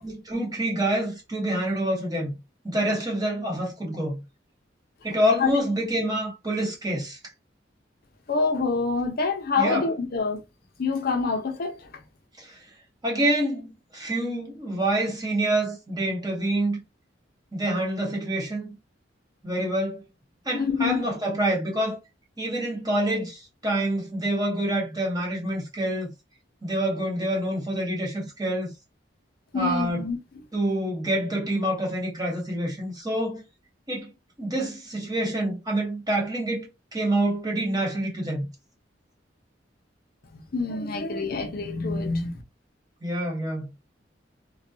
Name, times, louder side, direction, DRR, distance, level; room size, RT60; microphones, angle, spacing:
voice 1, 0.0-2.4 2.6-4.2 5.0-7.2 9.6-9.9 12.4-12.6 13.0-16.8 17.5-18.8 19.4-20.0 20.4-22.0 22.4-26.1 26.6-28.7 29.5-30.0 30.5-33.4 33.9-34.1 34.4-38.5 43.0-43.7, right 1 dB, 20° right, 0.9 m, -27 dB
voice 2, 8.3-10.4 10.8-11.9 20.5-21.0 29.5-30.2 40.3-42.4, left 4 dB, 55° left, 0.6 m, -26 dB
2.2 x 2.2 x 2.5 m
head